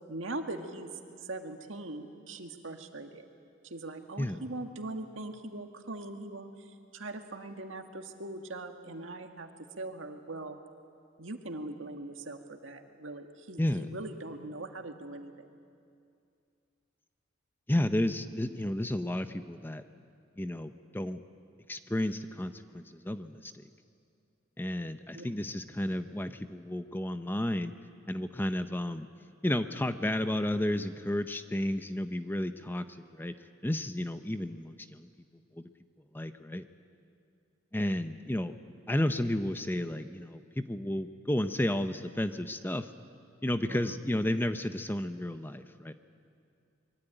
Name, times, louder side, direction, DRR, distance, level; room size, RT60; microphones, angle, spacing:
voice 1, 0.1-0.9 1.2-3.3 3.6-6.5 6.9-9.5 9.8-10.6 11.2-15.3 25.1-25.3 43.7-44.0, right 2 dB, 80° right, 5 dB, 1.9 m, -41 dB
voice 2, 13.6-13.9 17.7-19.8 20.4-21.2 21.7-23.5 24.6-27.7 28.1-29.1 29.4-32.8 33.1-33.3 33.6-35.1 35.6-35.7 36.1-36.6 37.7-38.5 38.9-42.9 43.4-45.9, left 1 dB, 10° left, 10 dB, 0.7 m, -32 dB
24.5 x 22.5 x 9.0 m, 2.4 s
head